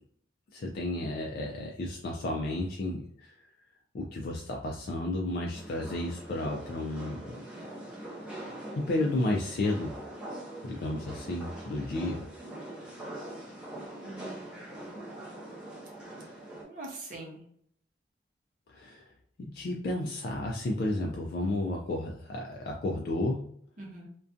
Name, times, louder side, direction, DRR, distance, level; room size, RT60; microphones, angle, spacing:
voice 1, 0.5-3.3 3.9-7.4 8.8-10.0 10.6-12.2 18.7-19.0 19.4-23.5, left 2 dB, 55° left, -1 dB, 0.3 m, -32 dB
sound 1, 5.5-16.6, right 1 dB, 5° right, 0.6 m, -43 dB
voice 2, 14.0-15.0 16.7-17.4 23.8-24.1, right 2 dB, 50° right, -1 dB, 0.7 m, -44 dB
2.4 x 2.2 x 2.5 m, 0.65 s
head